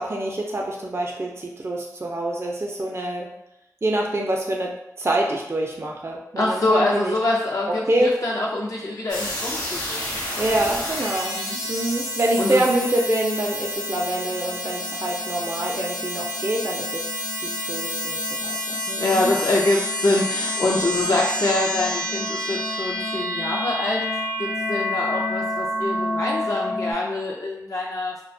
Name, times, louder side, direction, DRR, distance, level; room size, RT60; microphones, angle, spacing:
voice 1, 0.0-3.3 3.8-4.7 5.0-7.2 7.7-8.1 10.4-11.4 11.7-19.3, right 1 dB, 40° right, -1 dB, 0.4 m, -26 dB
voice 2, 6.4-10.2 11.3-11.9 12.4-12.6 19.0-24.0 24.4-28.1, left 2 dB, 55° left, -3 dB, 0.3 m, -25 dB
sound 1, 9.1-26.9, left 1 dB, 90° left, 0.7 m, -28 dB
2.3 x 2.1 x 2.5 m, 0.83 s
wide cardioid pair, 45°, 6 cm